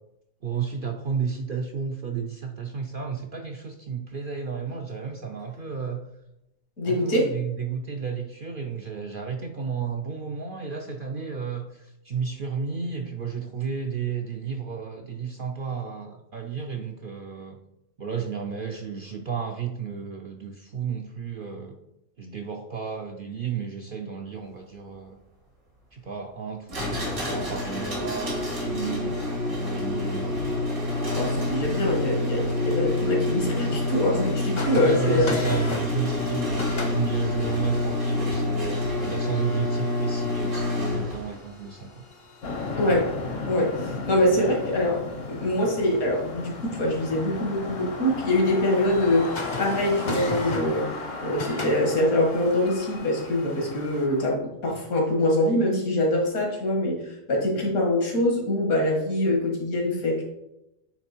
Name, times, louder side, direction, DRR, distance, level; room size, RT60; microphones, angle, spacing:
voice 1, 0.4-6.0 6.8-17.6 18.0-21.8 22.2-25.2 25.9-30.5 34.8-42.0, right 6 dB, 60° right, 3 dB, 0.5 m, -32 dB
voice 2, 6.8-7.3 31.1-35.4 42.7-43.0 43.5-45.0 45.3-49.3 49.6-51.0 51.2-57.0 57.3-60.2, left 1 dB, 80° left, 0 dB, 2.2 m, -24 dB
sound 1, 26.7-41.4, left 2 dB, 90° right, 2.7 m, -27 dB
sound 2, 34.3-54.1, left 2 dB, 35° left, 0.5 m, -40 dB
sound 3, 42.4-54.3, left 3 dB, 65° left, 1.2 m, -35 dB
9.0 x 3.3 x 4.4 m, 0.88 s
omnidirectional pair, 1.5 m